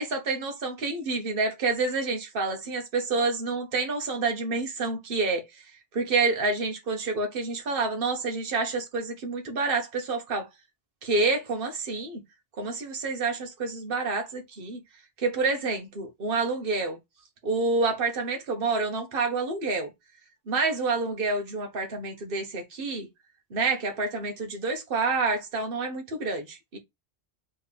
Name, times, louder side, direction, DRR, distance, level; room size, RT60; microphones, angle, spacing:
voice 1, 0.0-5.4 5.9-10.5 11.0-12.2 12.6-14.8 15.2-17.0 17.4-19.9 20.5-23.1 23.5-26.8, right 3 dB, 60° right, 1.3 m, -28 dB
4.2 x 3.4 x 3.3 m
omnidirectional pair, 1.1 m